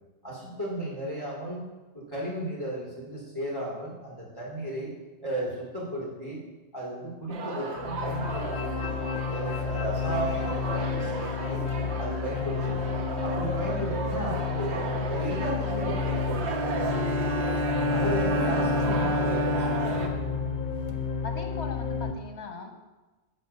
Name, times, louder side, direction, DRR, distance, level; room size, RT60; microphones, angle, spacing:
voice 1, 0.2-1.6 1.9-4.9 5.2-6.4 6.7-11.6 12.0-12.8 13.2-16.5 17.9-20.1, right 1 dB, 20° left, -6 dB, 2.8 m, -35 dB
sound 1, 7.3-20.1, right 3 dB, 80° right, 1.2 m, -35 dB
sound 2, 7.8-22.1, left 6 dB, 55° left, 0.5 m, -31 dB
Bowed string instrument, 16.4-21.0, left 1 dB, 45° right, 0.5 m, -29 dB
voice 2, 18.6-19.4 21.2-22.8, left 4 dB, 80° left, 3 dB, 1.4 m, -39 dB
8.5 x 3.8 x 6.8 m, 1.2 s
omnidirectional pair, 1.1 m